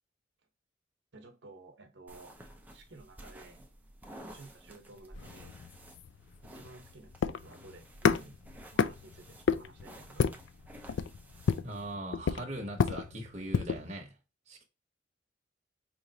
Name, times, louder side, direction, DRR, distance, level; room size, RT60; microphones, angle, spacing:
voice 1, 1.1-2.4 2.7-3.7 4.2-5.6 6.4-8.4 8.7-10.3, right 2 dB, 70° right, 1.0 m, -54 dB
sound 1, 2.1-12.0, right 1 dB, 10° right, 0.6 m, -53 dB
sound 2, 5.2-13.9, left 6 dB, 80° left, 0.4 m, -32 dB
voice 2, 11.6-14.2 14.5-14.6, right 1 dB, 35° right, 0.9 m, -40 dB
4.9 x 3.0 x 2.7 m
head